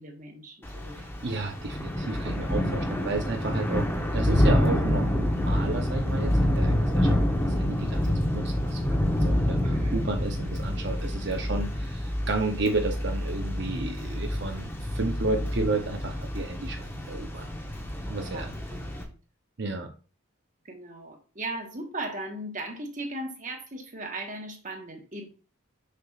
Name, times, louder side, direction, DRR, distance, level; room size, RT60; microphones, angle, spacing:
voice 1, 0.0-1.4 9.6-10.2 18.2-19.1 20.6-25.3, right 2 dB, 35° right, 2 dB, 1.3 m, -38 dB
Thunder / Rain, 0.6-19.0, left 1 dB, 10° left, 1.0 m, -27 dB
voice 2, 1.0-7.2 7.4-17.4 18.1-18.5 19.6-19.9, right 3 dB, 55° right, 4 dB, 0.7 m, -32 dB
6.7 x 6.6 x 2.4 m, 0.35 s
head